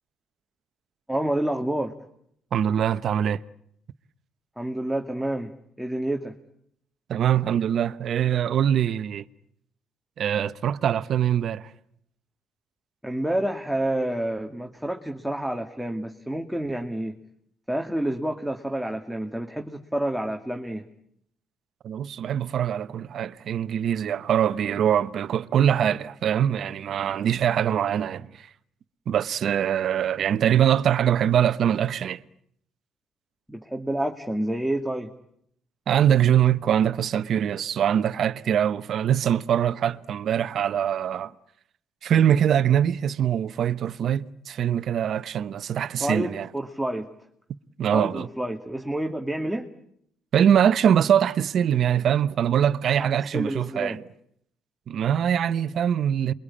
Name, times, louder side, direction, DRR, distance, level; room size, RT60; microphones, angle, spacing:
voice 1, 1.1-1.9 4.6-5.5 5.8-6.3 13.0-17.2 17.7-20.9 33.5-35.1 46.0-47.1 47.9-49.7 53.0-54.0, right 1 dB, ahead, 2.5 m, -28 dB
voice 2, 2.5-3.4 7.1-9.2 10.2-11.7 21.8-28.5 29.1-32.2 35.9-41.3 42.0-46.5 47.8-48.3 50.3-54.0 54.9-56.3, right 9 dB, 60° right, 1.1 m, -23 dB
28.0 x 23.5 x 8.7 m
supercardioid pair, 75°, 0 cm